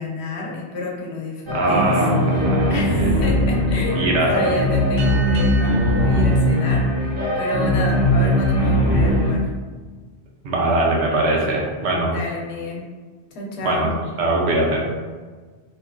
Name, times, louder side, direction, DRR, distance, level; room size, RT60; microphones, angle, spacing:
voice 1, 0.0-2.0 2.3-9.4 12.0-12.9 13.3-13.9, left 2 dB, 90° left, -1 dB, 0.9 m, -30 dB
sound 1, 1.5-9.3, equal, 60° right, 0.9 m, -19 dB
voice 2, 1.5-3.1 4.0-4.5 10.4-12.1 13.6-14.8, right 2 dB, 90° right, -2 dB, 0.9 m, -21 dB
sound 2, 5.0-7.9, right 4 dB, 60° left, 0.9 m, -36 dB
3.0 x 2.2 x 2.3 m, 1.4 s
omnidirectional pair, 1.1 m